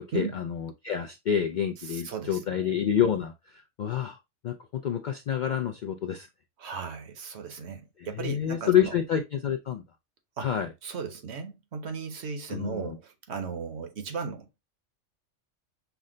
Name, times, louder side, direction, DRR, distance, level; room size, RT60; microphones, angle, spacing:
voice 1, 0.0-4.2 4.4-6.3 8.0-9.8 10.4-10.7 12.5-13.0, left 9 dB, 65° left, 0.4 m, -28 dB
voice 2, 1.8-2.7 6.6-8.9 10.4-10.5 10.8-14.6, right 5 dB, 65° right, 1.1 m, -36 dB
5.8 x 2.1 x 3.7 m
omnidirectional pair, 1.2 m